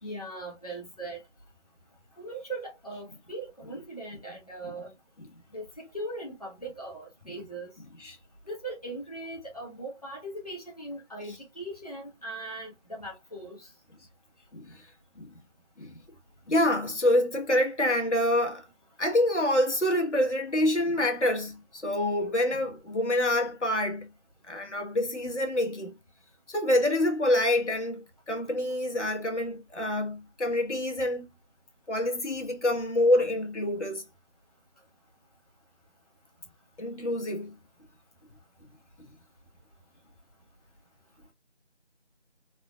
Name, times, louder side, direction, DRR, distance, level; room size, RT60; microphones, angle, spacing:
voice 1, 0.0-1.2 2.2-4.9 5.5-7.7 8.5-13.7, right 1 dB, 35° left, 1.0 m, -39 dB
voice 2, 14.5-14.9 15.2-15.4 15.8-16.0 16.5-18.7 19.0-24.1 24.4-25.9 26.5-31.3 31.9-34.0 36.8-37.6, left 1 dB, 85° left, 1.3 m, -27 dB
3.7 x 2.4 x 2.2 m
figure-of-eight pair, 180°, 34 cm